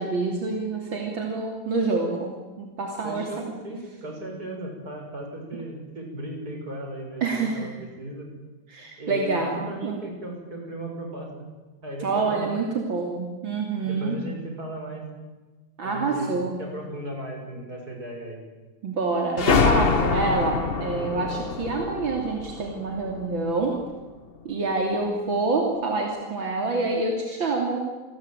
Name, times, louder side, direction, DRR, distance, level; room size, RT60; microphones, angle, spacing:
voice 1, 0.0-3.5 7.2-7.7 8.7-10.0 12.0-14.2 15.8-16.6 18.8-23.8 24.5-27.9, right 3 dB, 80° right, 1 dB, 3.7 m, -27 dB
voice 2, 3.0-8.3 9.0-11.3 11.8-12.5 13.8-15.1 15.8-18.4, right 1 dB, 50° right, 2 dB, 7.1 m, -36 dB
sound 1, 19.4-23.8, left 5 dB, 35° left, 1.1 m, -25 dB
29.0 x 20.0 x 9.2 m, 1.2 s
omnidirectional pair, 2.1 m